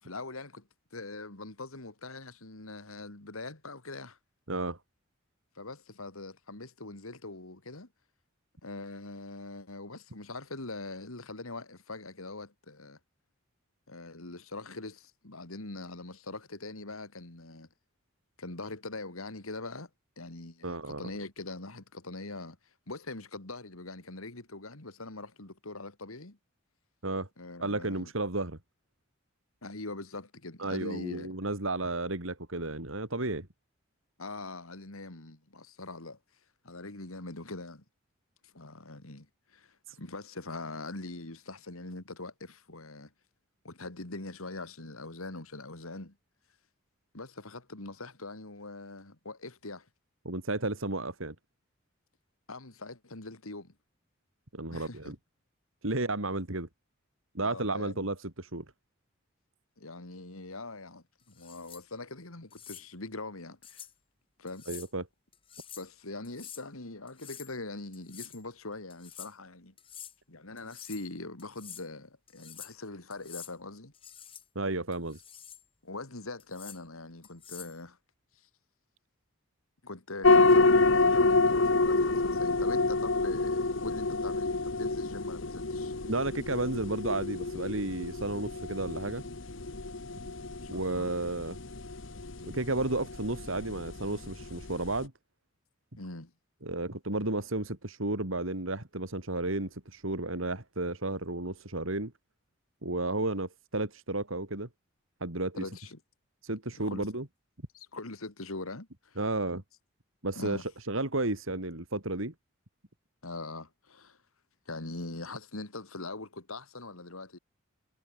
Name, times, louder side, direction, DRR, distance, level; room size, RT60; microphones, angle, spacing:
voice 1, 0.0-4.2 5.5-7.9 8.6-13.0 13.9-17.7 18.4-19.9 20.2-22.6 22.9-26.4 27.4-28.1 29.6-31.3 34.2-36.2 36.6-37.8 38.4-43.1 43.6-46.1 47.1-49.9 52.5-53.7 54.7-55.1 57.4-58.1 59.8-63.8 64.4-64.7 65.8-69.7 70.3-73.9 75.8-78.0 78.3-78.5 79.8-85.9 90.6-91.1 96.0-96.3 105.6-106.0 106.7-107.1 107.7-109.2 110.3-110.7 113.2-114.2 114.7-117.4, left 2 dB, 85° left, 2.8 m, -42 dB
voice 2, 20.6-21.0 27.0-27.3 27.6-28.6 30.6-33.5 39.9-40.0 50.2-51.3 54.5-55.1 55.8-56.7 57.3-58.6 64.7-65.0 74.5-75.2 86.1-89.2 90.7-91.6 92.4-95.1 96.6-102.1 102.8-104.7 105.2-105.7 106.4-107.3 109.2-109.6 110.2-112.3, right 2 dB, 70° right, 3.3 m, -32 dB
sound 1, 61.3-61.8 62.5-62.8 63.6-63.9 64.5-64.9 65.3-65.9 66.2-66.6 67.1-67.5 67.9-68.4 68.9-69.3 69.8-70.1 70.6-71.1 71.4-71.8 72.3-72.8 73.1-73.5 73.9-74.4 74.9-75.6 76.4-76.8 77.2-77.8, left 9 dB, 25° left, 2.4 m, -47 dB
sound 2, 80.2-95.0, left 3 dB, 65° left, 1.3 m, -28 dB
head